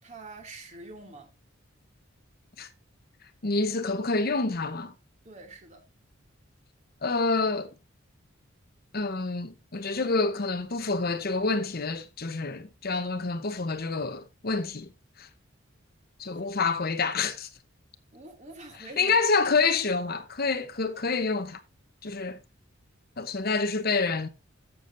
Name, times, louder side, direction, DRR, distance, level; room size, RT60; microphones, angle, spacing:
voice 1, 0.0-1.3 5.2-5.8 16.2-16.5 18.1-19.2, right 2 dB, 35° right, 2.5 m, -46 dB
voice 2, 3.4-4.9 7.0-7.7 8.9-14.9 15.2-15.3 16.2-17.5 19.0-21.6 22.0-22.4 23.2-24.3, left 4 dB, 50° left, 1.0 m, -27 dB
14.0 x 7.1 x 2.6 m
head